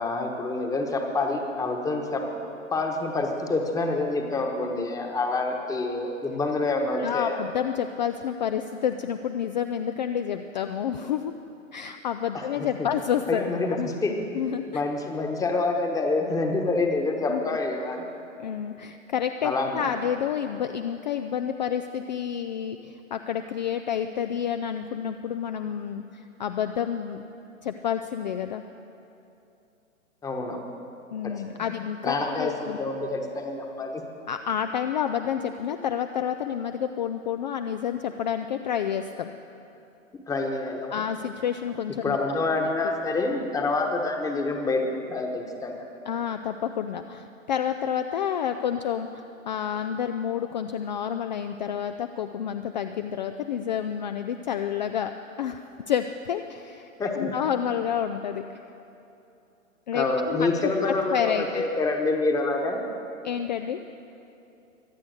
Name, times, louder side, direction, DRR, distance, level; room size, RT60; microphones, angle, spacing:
voice 1, 0.0-2.2 2.7-7.4 12.3-12.9 13.3-14.1 14.7-18.0 19.4-20.0 30.2-30.8 31.2-31.3 31.6-31.7 32.0-34.0 40.3-41.0 42.0-45.8 57.0-57.3 59.9-62.8, left 3 dB, 10° left, 3 dB, 1.2 m, -27 dB
voice 2, 6.9-11.3 11.7-13.4 13.8-13.9 14.3-14.8 17.3-17.4 18.4-27.2 27.6-28.6 31.1-32.8 34.3-39.3 40.9-42.2 46.1-55.1 55.4-56.9 57.1-58.4 59.9-60.5 60.9-61.6 63.2-63.8, left 9 dB, 35° left, 8 dB, 0.4 m, -29 dB
23.5 x 8.1 x 6.5 m, 2.8 s
figure-of-eight pair, 120°, 39 cm